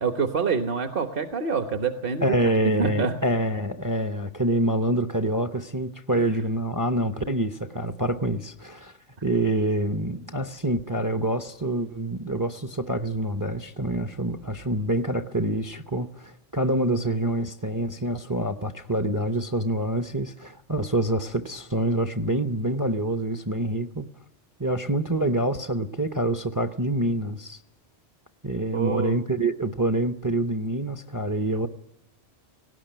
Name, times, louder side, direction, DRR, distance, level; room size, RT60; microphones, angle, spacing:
voice 1, 0.0-2.5 2.8-3.2 28.7-29.2, right 5 dB, 50° right, 1.2 m, -26 dB
voice 2, 2.2-8.9 9.2-24.1 24.6-27.6 28.4-31.7, right 1 dB, 20° right, 0.6 m, -26 dB
18.5 x 17.5 x 9.0 m
omnidirectional pair, 1.2 m